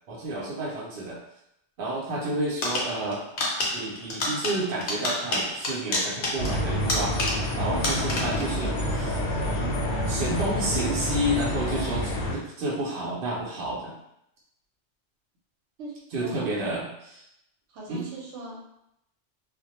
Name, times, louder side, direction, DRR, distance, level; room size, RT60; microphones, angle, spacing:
voice 1, 0.1-1.2 1.8-3.2 3.7-9.2 9.6-14.0 16.1-17.2 17.9-18.0, right 1 dB, 60° right, -5 dB, 0.7 m, -30 dB
sound 1, 2.6-7.6 7.8-8.5, left 2 dB, 55° left, 0.7 m, -29 dB
sound 2, 6.4-12.3, left 1 dB, 85° left, 0.9 m, -28 dB
voice 2, 7.6-8.0 15.8-16.7 17.7-18.8, equal, 90° right, -2 dB, 1.0 m, -40 dB
2.2 x 2.1 x 2.8 m, 0.79 s
omnidirectional pair, 1.2 m